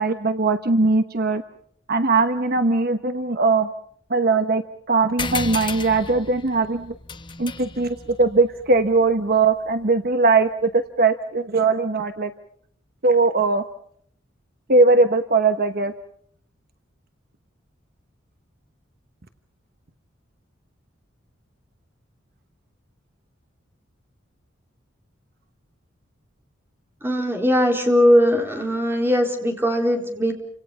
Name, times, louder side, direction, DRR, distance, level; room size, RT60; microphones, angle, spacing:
voice 1, 0.0-1.4 1.9-3.7 4.1-4.6 4.9-6.9 7.4-12.3 13.0-13.6 14.7-15.9, right 3 dB, 50° right, 8 dB, 1.1 m, -20 dB
sound 1, 5.2-10.1, left 4 dB, 25° left, 1.1 m, -34 dB
voice 2, 27.0-30.3, equal, 10° right, 2 dB, 4.2 m, -19 dB
29.5 x 26.5 x 5.7 m, 0.66 s
head